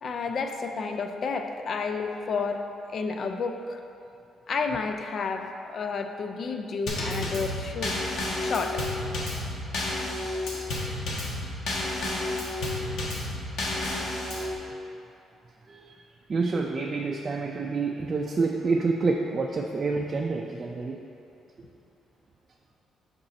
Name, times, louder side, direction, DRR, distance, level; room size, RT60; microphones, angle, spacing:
voice 1, 0.0-2.6 2.9-3.8 4.5-8.0 8.4-8.8, left 4 dB, 55° left, 5 dB, 0.5 m, -31 dB
Drum kit / Snare drum / Bass drum, 6.9-14.5, left 2 dB, 75° left, 1.2 m, -31 dB
voice 2, 16.3-21.0, right 4 dB, 40° right, 0 dB, 0.4 m, -28 dB
6.1 x 5.3 x 4.2 m, 2.7 s
cardioid pair, 90°, 0 cm